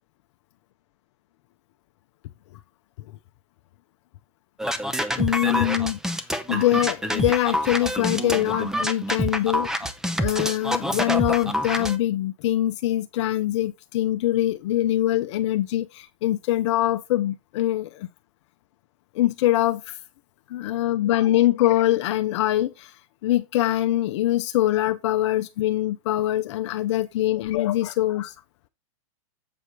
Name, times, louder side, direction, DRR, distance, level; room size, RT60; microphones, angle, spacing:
sound 1, 4.6-12.0, equal, 5° right, 0.6 m, -26 dB
voice 1, 5.2-6.0 6.5-9.7 10.2-18.1 19.1-20.0 20.5-22.9 23.2-28.3, left 14 dB, 60° left, 0.6 m, -23 dB
7.8 x 4.9 x 4.6 m
hypercardioid pair, 130°, 17 cm